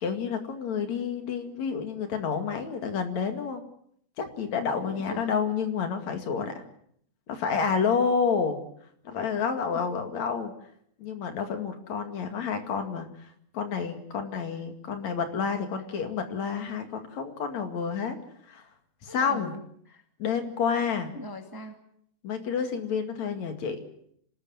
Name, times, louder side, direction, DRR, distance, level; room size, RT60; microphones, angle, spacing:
voice 1, 0.0-3.6 4.2-6.6 7.3-8.6 9.0-10.5 11.0-13.1 13.5-18.2 18.5-18.6 19.0-19.5 20.2-21.2 22.2-23.8, left 6 dB, 55° left, 7 dB, 3.3 m, -29 dB
voice 2, 4.8-5.3 9.7-9.9 19.1-20.0 21.1-21.8, equal, 10° right, 5 dB, 1.3 m, -41 dB
26.0 x 19.5 x 7.8 m, 0.68 s
omnidirectional pair, 4.1 m